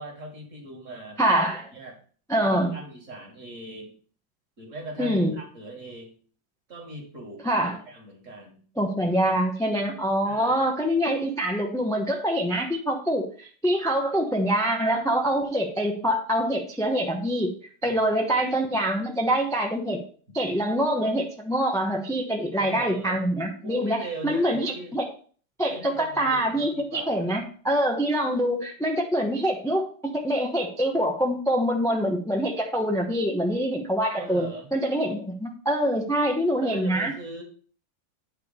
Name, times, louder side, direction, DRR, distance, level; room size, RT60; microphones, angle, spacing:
voice 1, 0.0-1.3 1.7-2.0 2.4-3.9 4.6-6.1 6.7-7.4 7.9-8.6 10.3-10.7 17.8-18.0 22.5-23.2 23.6-25.0 25.7-27.3 34.2-34.7 36.6-37.4, right 2 dB, 40° right, 0 dB, 2.2 m, -40 dB
voice 2, 1.2-1.7 2.3-2.8 5.0-5.4 7.4-7.8 8.8-17.5 17.8-20.0 20.3-25.0 25.6-37.1, equal, 5° left, 0 dB, 0.6 m, -25 dB
9.2 x 3.3 x 6.7 m, 0.43 s
omnidirectional pair, 2.0 m